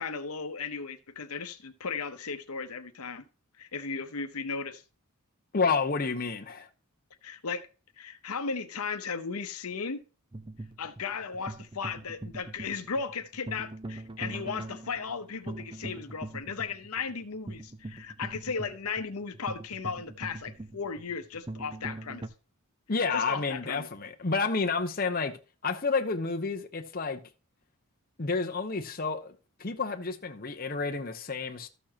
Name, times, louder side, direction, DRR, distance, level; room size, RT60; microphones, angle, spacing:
voice 1, 0.0-3.2 3.6-4.8 7.2-7.7 8.0-10.0 10.8-22.2 23.1-23.9, left 5 dB, 80° left, 0.9 m, -36 dB
voice 2, 5.5-6.7 22.9-27.2 28.2-29.3 29.6-31.7, left 4 dB, 40° left, 0.8 m, -30 dB
sound 1, 10.3-22.3, right 2 dB, 20° right, 0.6 m, -42 dB
13.5 x 6.9 x 2.9 m
head